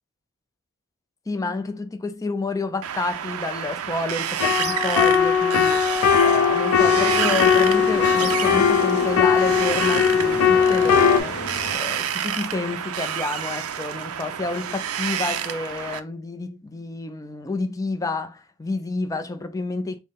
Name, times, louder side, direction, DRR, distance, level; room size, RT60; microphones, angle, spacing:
voice 1, 1.3-5.9 6.2-20.0, left 3 dB, 15° left, 0.4 m, -29 dB
Wind, 2.8-16.0, right 9 dB, 85° right, 0.4 m, -29 dB
sound 1, 4.4-11.2, left 7 dB, 85° left, 0.4 m, -19 dB
sound 2, 6.8-11.8, left 2 dB, 55° left, 0.7 m, -33 dB
3.7 x 2.1 x 3.6 m
head